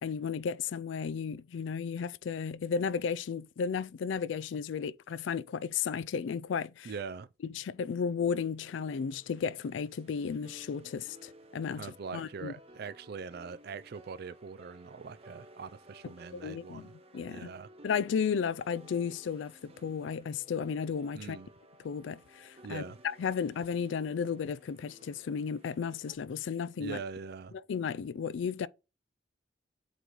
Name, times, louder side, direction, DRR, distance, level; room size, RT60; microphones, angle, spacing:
voice 1, 0.0-6.9 7.4-12.5 16.3-16.9 17.1-17.5 17.8-21.4 21.8-27.0 27.7-28.7, left 6 dB, 85° left, 0.4 m, -34 dB
voice 2, 6.8-7.3 11.7-16.9 17.3-17.7 21.1-21.5 22.6-23.0 26.8-27.5, right 5 dB, 55° right, 0.4 m, -42 dB
sound 1, 8.6-26.2, right 1 dB, 35° right, 1.0 m, -57 dB
8.0 x 3.1 x 3.9 m
head